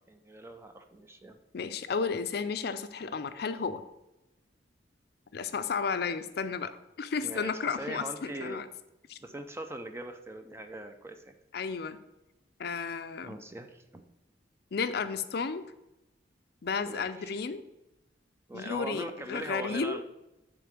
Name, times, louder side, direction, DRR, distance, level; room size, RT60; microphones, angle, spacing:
voice 1, 0.1-1.4 7.2-8.6 9.2-11.3 13.2-14.0 16.8-17.4 18.5-20.0, right 1 dB, 15° right, 6 dB, 0.5 m, -41 dB
voice 2, 1.5-3.8 5.3-8.7 9.1-9.2 11.5-12.0 12.6-13.4 14.7-15.6 16.6-17.6 18.5-20.0, left 5 dB, 60° left, 11 dB, 0.5 m, -33 dB
6.8 x 3.8 x 6.4 m, 0.96 s
head